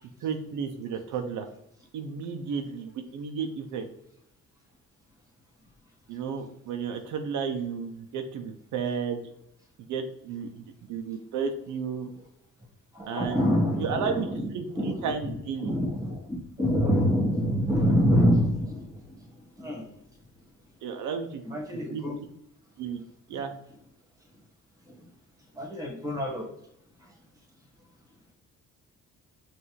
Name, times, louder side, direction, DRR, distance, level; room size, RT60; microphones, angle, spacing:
voice 1, 0.2-1.5 1.9-3.9 6.1-9.2 9.9-10.5 10.9-12.1 13.1-13.4 13.8-15.7 20.8-21.4 21.9-22.0 22.8-23.0 23.3-23.5, right 6 dB, 80° right, 5 dB, 0.6 m, -32 dB
voice 2, 12.9-15.3 15.6-19.9 21.4-22.2 24.8-25.1 25.5-26.5 27.0-27.1, equal, 10° right, 1 dB, 1.4 m, -26 dB
5.6 x 2.6 x 3.0 m, 0.76 s
cardioid pair, 90°, 30 cm